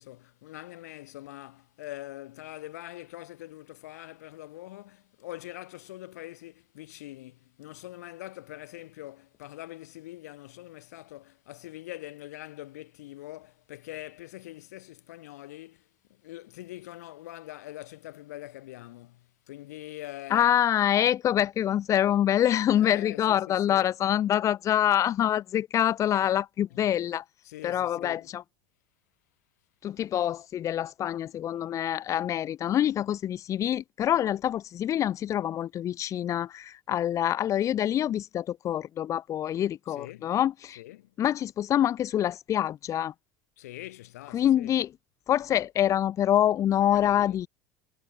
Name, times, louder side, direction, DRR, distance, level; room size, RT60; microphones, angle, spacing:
voice 1, 0.0-20.6 22.8-23.9 26.7-26.9 27.4-28.3 39.9-40.3 40.8-41.1 43.6-44.7 46.8-47.4, left 16 dB, 90° left, 3.4 m, -44 dB
voice 2, 20.3-27.2 27.6-28.4 29.8-40.8 41.2-43.1 44.3-44.9 45.3-47.5, left 11 dB, 40° left, 1.8 m, -26 dB
supercardioid pair, 115°, 8 cm